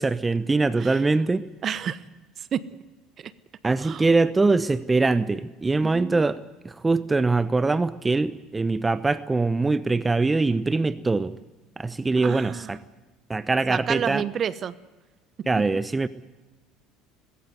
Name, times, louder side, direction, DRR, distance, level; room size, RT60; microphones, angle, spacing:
voice 1, 0.0-1.5 3.6-6.4 6.6-11.4 11.8-12.8 13.3-14.2 15.5-16.1, right 3 dB, 20° right, 16 dB, 0.8 m, -23 dB
voice 2, 1.6-2.0 2.4-2.8 3.2-3.3 3.8-4.1 5.8-6.3 12.2-12.7 13.7-14.7, right 8 dB, 45° right, 18 dB, 1.0 m, -30 dB
20.0 x 17.0 x 9.4 m, 1.2 s
hypercardioid pair, 80°, 0 cm